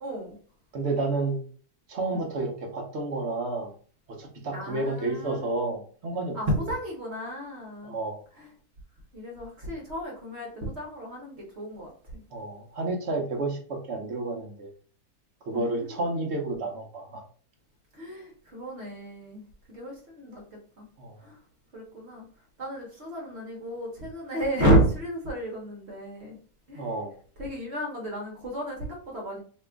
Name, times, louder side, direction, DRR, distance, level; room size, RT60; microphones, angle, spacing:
voice 1, 0.0-0.4 2.1-2.2 4.5-5.4 6.3-8.0 8.4-8.5 9.1-12.2 15.5-16.3 17.9-20.4 20.8-20.9 21.2-21.4 21.7-22.3 22.6-26.4 26.7-26.9 27.4-29.4, right 1 dB, 50° right, -1 dB, 1.0 m, -31 dB
voice 2, 0.7-1.4 1.9-3.7 4.1-6.4 7.8-8.2 12.3-14.7 15.4-17.2 21.0-21.2 26.7-27.1, right 2 dB, 65° right, 2 dB, 0.7 m, -30 dB
2.9 x 2.4 x 3.4 m, 0.43 s
omnidirectional pair, 1.8 m